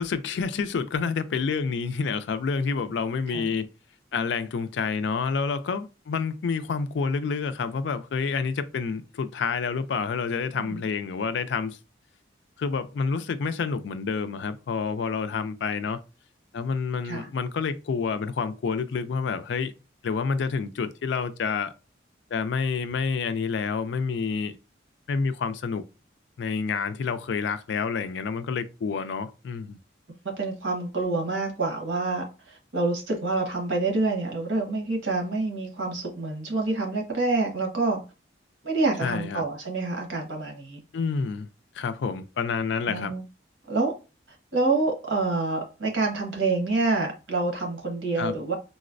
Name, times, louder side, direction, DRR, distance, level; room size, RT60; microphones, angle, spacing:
voice 1, 0.0-3.7 4.1-11.8 12.6-16.0 16.5-19.7 20.0-21.7 22.3-24.5 25.1-25.8 26.4-29.8 39.0-39.4 40.9-41.5 41.7-43.1 48.2-48.3, left 5 dB, 70° left, 0.3 m, -28 dB
voice 2, 30.2-38.0 38.6-40.8 42.9-43.2 43.7-43.9 44.5-48.5, right 3 dB, 90° right, 1.1 m, -27 dB
3.9 x 2.0 x 2.5 m
head